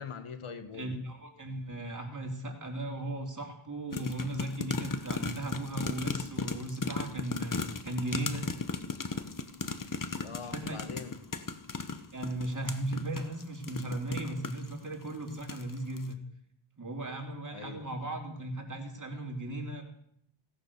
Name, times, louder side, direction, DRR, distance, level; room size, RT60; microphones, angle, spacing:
voice 1, 0.0-1.0 10.2-11.2 17.5-18.1, left 6 dB, 80° left, 8 dB, 1.8 m, -43 dB
voice 2, 0.7-8.5 10.5-10.8 12.1-16.2 16.8-19.8, right 1 dB, 40° right, 2 dB, 3.2 m, -37 dB
sound 1, 3.9-14.7 15.3-15.7 16.0-16.1, left 4 dB, 40° left, 1.3 m, -36 dB
17.0 x 9.9 x 6.9 m, 0.71 s
wide cardioid pair, 85°, 49 cm